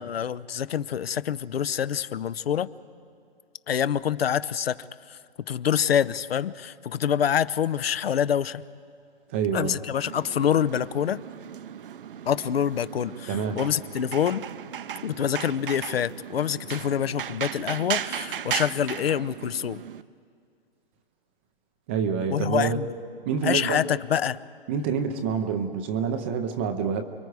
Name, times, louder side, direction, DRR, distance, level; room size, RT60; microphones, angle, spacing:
voice 1, 0.0-2.7 3.7-4.8 5.1-5.2 5.5-8.6 9.5-11.2 12.2-14.5 15.0-19.8 22.3-22.9 23.4-24.4, left 9 dB, 75° left, 15 dB, 0.8 m, -26 dB
voice 2, 9.3-9.8 13.3-13.6 21.9-22.8 23.3-23.8 24.7-27.0, right 6 dB, 10° right, 7 dB, 0.5 m, -27 dB
sound 1, 10.0-20.0, right 9 dB, 60° right, 0.7 m, -36 dB
29.0 x 22.5 x 4.8 m, 2.3 s
hypercardioid pair, 160°, 30 cm